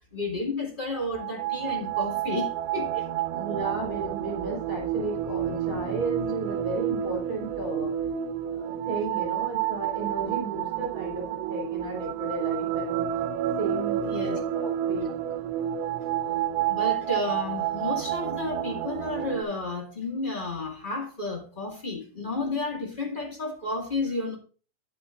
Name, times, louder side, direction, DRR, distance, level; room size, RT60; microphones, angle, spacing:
voice 1, 0.1-3.0 14.0-14.4 16.7-24.3, left 2 dB, 35° left, 0.7 m, -32 dB
sound 1, 1.0-19.4, right 10 dB, 80° right, 2.9 m, -30 dB
voice 2, 3.3-7.9 8.5-13.0 13.6-15.1, right 3 dB, 20° right, 5.1 m, -34 dB
11.0 x 10.0 x 2.5 m
omnidirectional pair, 5.1 m